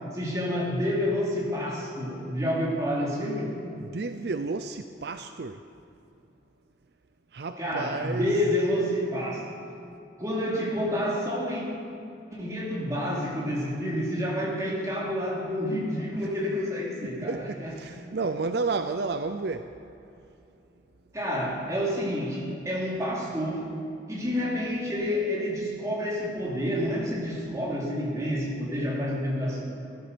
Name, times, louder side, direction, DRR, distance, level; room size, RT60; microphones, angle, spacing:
voice 1, 0.0-3.5 7.6-9.6 10.2-11.6 12.3-17.7 21.1-23.6 24.1-29.6, equal, 20° right, -5 dB, 3.2 m, -29 dB
voice 2, 3.8-5.6 7.3-8.7 16.2-16.4 17.0-19.8, right 3 dB, 60° right, 9 dB, 0.5 m, -32 dB
15.5 x 11.0 x 6.8 m, 2.7 s
head